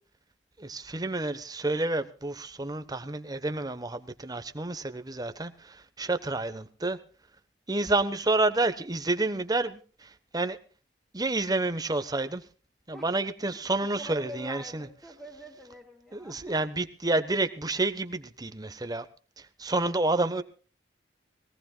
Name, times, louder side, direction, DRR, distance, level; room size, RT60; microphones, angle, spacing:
voice 1, 0.6-7.0 7.7-10.6 11.1-12.4 12.9-14.9 16.1-19.1 19.4-20.4, right 2 dB, 20° right, 10 dB, 1.1 m, -29 dB
voice 2, 14.0-16.5, right 1 dB, 5° left, -1 dB, 2.9 m, -44 dB
22.0 x 18.0 x 2.3 m, 0.38 s
head